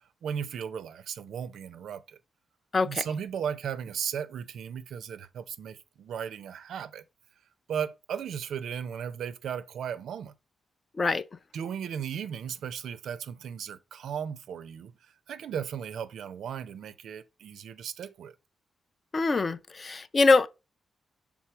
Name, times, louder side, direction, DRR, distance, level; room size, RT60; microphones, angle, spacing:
voice 1, 0.2-2.2 2.8-7.0 7.7-10.3 11.5-14.9 15.3-18.3, right 8 dB, 80° right, 0.5 m, -36 dB
voice 2, 2.7-3.0 11.0-11.2 19.1-20.5, left 3 dB, 25° left, 0.3 m, -23 dB
6.1 x 3.5 x 4.4 m
wide cardioid pair, 175°, 0 cm